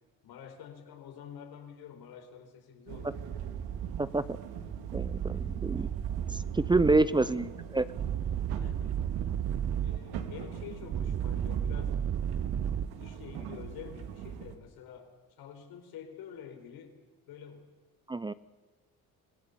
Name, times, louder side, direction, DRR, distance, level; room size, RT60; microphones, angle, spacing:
voice 1, 0.2-3.2 7.1-7.4 8.6-9.0 9.8-12.0 13.0-17.0 17.3-17.7, left 8 dB, 75° left, 5 dB, 4.7 m, -48 dB
sound 1, 2.9-14.6, right 8 dB, 80° right, 2.7 m, -42 dB
sound 2, 3.3-4.0 4.9-7.1 8.0-10.0 10.9-12.9, right 9 dB, 40° right, 0.8 m, -33 dB
voice 2, 4.9-5.9 6.3-7.5 7.7-7.8 18.1-18.3, right 2 dB, 10° right, 15 dB, 0.7 m, -27 dB
26.0 x 17.5 x 8.8 m, 1.3 s
cardioid pair, 90°, 37 cm